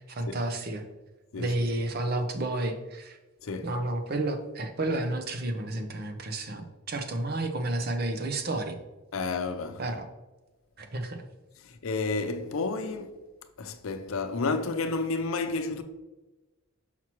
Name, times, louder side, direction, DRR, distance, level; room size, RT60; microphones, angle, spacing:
voice 1, 0.1-0.8 1.4-3.2 3.6-8.8 9.8-10.1 10.8-11.2, right 2 dB, 45° right, 0.7 m, -31 dB
voice 2, 3.4-3.7 9.1-9.8 11.8-13.2 13.6-15.8, left 3 dB, 75° left, 0.6 m, -31 dB
5.8 x 5.8 x 3.0 m
head